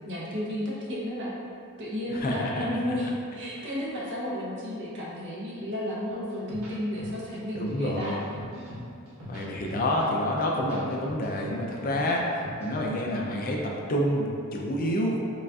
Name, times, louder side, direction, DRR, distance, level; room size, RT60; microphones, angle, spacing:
voice 1, 0.0-1.3 1.8-8.7, equal, 55° right, -5 dB, 0.7 m, -33 dB
voice 2, 2.1-2.6 7.5-8.2 9.3-12.3 12.6-15.2, left 1 dB, 40° left, -1 dB, 0.4 m, -28 dB
sound 1, 6.5-7.3 7.7-8.8 9.1-10.0 10.4-12.1 12.4-13.3, left 1 dB, 75° right, 1.1 m, -41 dB
4.8 x 2.4 x 2.4 m, 2.5 s
head